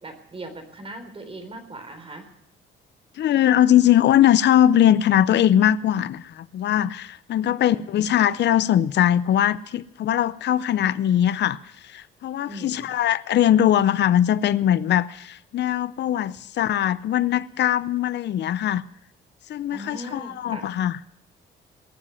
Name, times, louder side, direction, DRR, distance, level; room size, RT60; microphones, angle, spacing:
voice 1, 0.0-2.3 7.4-8.0 12.5-12.9 19.7-20.7, right 1 dB, 30° right, 3.9 m, -39 dB
voice 2, 3.2-18.8 19.5-21.0, left 11 dB, 60° left, 0.6 m, -21 dB
19.0 x 7.4 x 9.8 m
cardioid pair, 90°, 20 cm